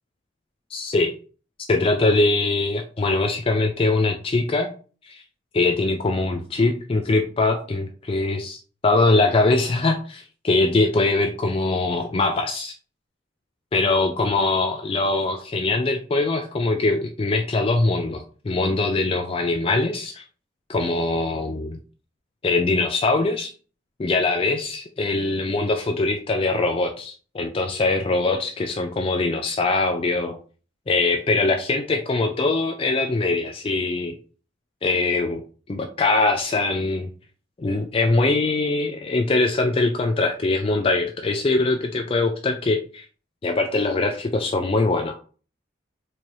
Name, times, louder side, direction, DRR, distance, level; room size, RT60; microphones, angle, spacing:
voice 1, 0.7-1.1 1.7-4.7 5.1-5.2 5.5-12.7 13.7-20.2 20.7-21.8 22.4-23.5 24.0-30.4 30.9-34.1 34.8-35.4 35.7-37.1 37.6-43.0 43.4-45.2, left 3 dB, 30° left, 4 dB, 0.3 m, -22 dB
4.5 x 2.7 x 3.0 m, 0.38 s
head